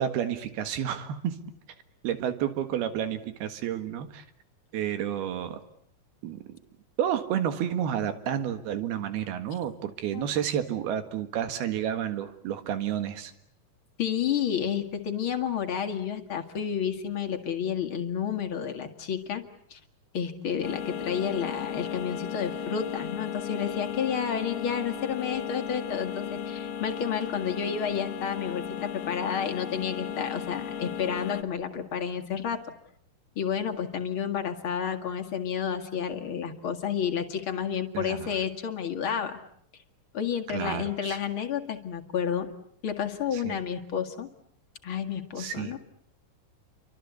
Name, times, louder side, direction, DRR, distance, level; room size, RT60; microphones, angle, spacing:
voice 1, 0.0-1.4 2.0-4.3 4.7-5.6 6.2-6.4 7.0-13.3 37.9-38.4 40.5-41.2 43.3-43.6 45.4-45.7, right 9 dB, 85° right, 10 dB, 3.7 m, -30 dB
voice 2, 14.0-19.4 19.7-19.8 20.1-32.6 33.4-39.4 40.1-42.5 42.8-44.3 44.8-45.8, left 8 dB, 40° left, 6 dB, 2.1 m, -30 dB
sound 1, 20.6-31.4, left 8 dB, 65° left, 2.6 m, -35 dB
29.5 x 24.5 x 8.3 m, 0.68 s
omnidirectional pair, 4.3 m